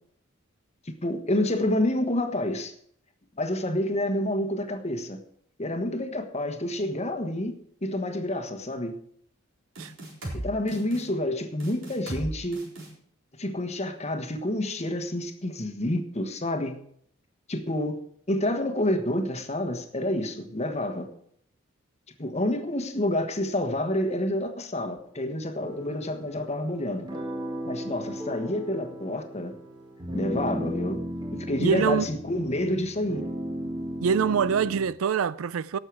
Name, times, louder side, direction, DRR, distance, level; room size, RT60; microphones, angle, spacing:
voice 1, 0.8-2.7 3.4-5.2 5.6-7.5 7.8-9.0 10.3-12.7 13.4-16.8 17.5-18.0 18.3-21.1 22.2-27.1 27.6-29.6 30.1-31.0 31.3-33.2, left 1 dB, 30° left, 1.3 m, -28 dB
sound 1, 9.8-10.4 10.7-11.0 11.6-12.3 12.5-12.9, right 1 dB, 65° right, 4.3 m, -36 dB
sound 2, 25.6-34.8, equal, 20° right, 1.9 m, -36 dB
voice 2, 31.6-32.1 34.0-35.8, right 6 dB, 90° right, 0.4 m, -24 dB
17.5 x 6.6 x 4.8 m
head